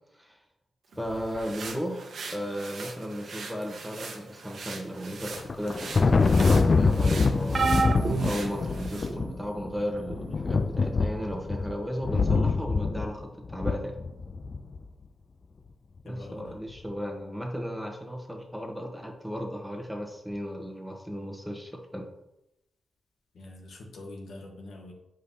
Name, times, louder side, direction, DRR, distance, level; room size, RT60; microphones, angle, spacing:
sound 1, 0.9-9.2, right 4 dB, 75° right, 0.9 m, -42 dB
voice 1, 1.0-2.0 2.3-7.8 8.2-14.0 16.0-22.1, equal, ahead, 2 dB, 1.2 m, -35 dB
Thunder, 5.3-14.8, left 4 dB, 45° left, 0.4 m, -25 dB
sound 2, 7.5-9.3 10.1-10.3 11.6-11.7, right 4 dB, 55° right, 0.4 m, -29 dB
voice 2, 16.0-16.6 23.3-24.9, left 2 dB, 80° left, 0 dB, 1.3 m, -44 dB
7.7 x 5.1 x 2.8 m, 0.87 s
cardioid pair, 85°, 0 cm